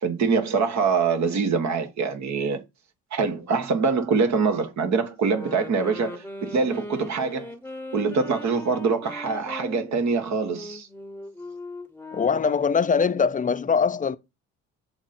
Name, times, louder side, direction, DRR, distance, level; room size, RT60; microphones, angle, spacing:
voice 1, 0.0-2.6 3.1-7.5 7.9-10.9, right 5 dB, 65° right, 1.7 m, -24 dB
sound 1, 5.3-12.8, left 2 dB, 5° left, 1.0 m, -40 dB
voice 2, 12.1-14.2, left 6 dB, 25° left, 0.6 m, -22 dB
7.1 x 3.9 x 4.3 m
cardioid pair, 90°, 30 cm